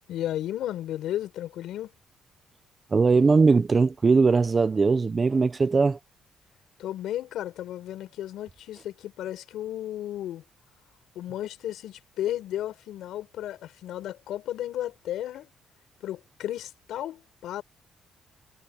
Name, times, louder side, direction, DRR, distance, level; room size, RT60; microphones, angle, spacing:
voice 1, 0.1-1.9 6.8-10.4 11.1-15.5 16.0-17.6, left 12 dB, 80° left, 6.2 m, -34 dB
voice 2, 2.9-6.0, right 4 dB, 30° right, 1.1 m, -20 dB
cardioid pair, 90°, 0 cm